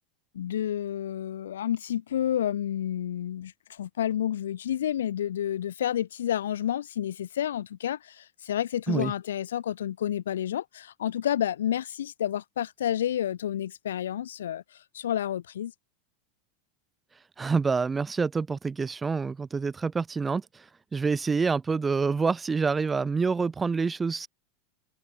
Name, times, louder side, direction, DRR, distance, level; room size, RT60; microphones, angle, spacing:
voice 1, 0.3-14.6 14.9-15.7, left 10 dB, 90° left, 1.8 m, -30 dB
voice 2, 17.4-20.6 20.9-24.3, right 4 dB, 20° right, 0.9 m, -27 dB
hypercardioid pair, 105°, 0 cm